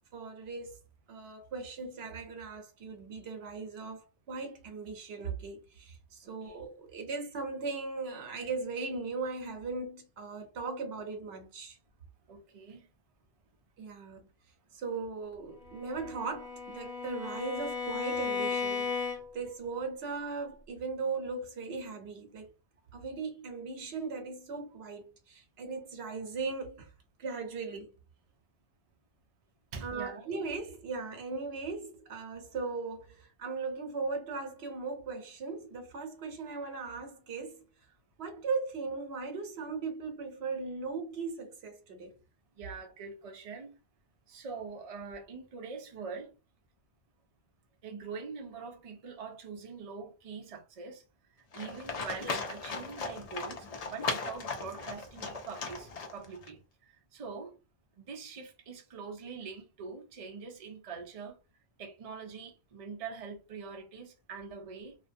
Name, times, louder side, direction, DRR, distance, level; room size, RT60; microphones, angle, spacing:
voice 1, 0.1-0.8 1.1-11.8 13.8-14.3 14.7-22.5 22.9-26.9 27.2-27.9 29.8-37.6 38.2-42.1, right 4 dB, 70° right, 0.9 m, -38 dB
voice 2, 6.2-6.6 12.3-12.9 29.7-30.3 42.5-43.8 44.3-46.4 47.8-51.0 51.5-57.6 58.0-61.4 61.8-65.0, right 5 dB, 45° right, 0.5 m, -44 dB
Bowed string instrument, 15.7-19.5, left 5 dB, 70° left, 0.8 m, -35 dB
Livestock farm animals working animals, 51.5-56.5, left 4 dB, 50° left, 0.4 m, -37 dB
2.5 x 2.2 x 2.5 m
omnidirectional pair, 1.1 m